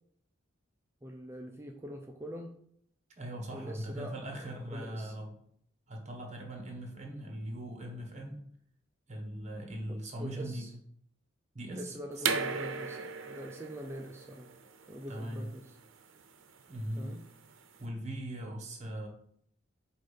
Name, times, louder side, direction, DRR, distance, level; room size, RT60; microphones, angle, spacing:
voice 1, 1.0-2.5 3.5-4.2 4.7-5.1 10.2-10.7 11.7-14.5 14.9-15.7 17.0-17.2, equal, 15° right, 2 dB, 0.4 m, -43 dB
voice 2, 3.2-5.4 5.9-8.4 9.1-10.7 11.5-11.8 12.2-12.3 15.1-15.5 16.7-17.1 17.8-19.1, right 1 dB, 35° right, 2 dB, 1.4 m, -40 dB
sound 1, 12.2-17.8, right 5 dB, 75° right, 0.6 m, -37 dB
7.5 x 2.6 x 5.1 m, 0.68 s
head